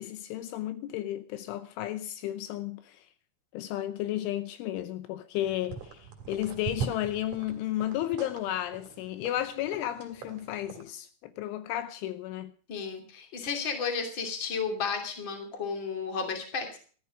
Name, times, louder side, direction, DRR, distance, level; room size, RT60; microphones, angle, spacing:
voice 1, 0.0-3.1 3.5-12.5, left 13 dB, 80° left, 3.1 m, -33 dB
sound 1, 5.4-10.8, right 6 dB, 45° right, 3.3 m, -41 dB
voice 2, 12.7-16.8, left 5 dB, 30° left, 2.7 m, -33 dB
14.0 x 13.5 x 5.2 m
omnidirectional pair, 5.7 m